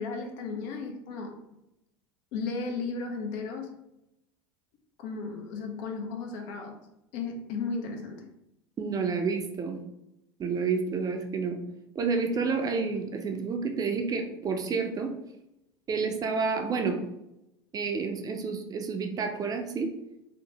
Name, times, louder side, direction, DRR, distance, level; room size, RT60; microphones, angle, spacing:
voice 1, 0.0-1.4 2.3-3.8 5.0-6.9 7.1-8.3, left 4 dB, 65° left, 4 dB, 0.5 m, -35 dB
voice 2, 8.8-9.8 10.4-11.6 12.0-15.1 15.9-17.0 17.7-19.9, right 5 dB, 30° right, 4 dB, 0.4 m, -29 dB
2.9 x 2.0 x 2.7 m, 0.87 s
hypercardioid pair, 85°, 13 cm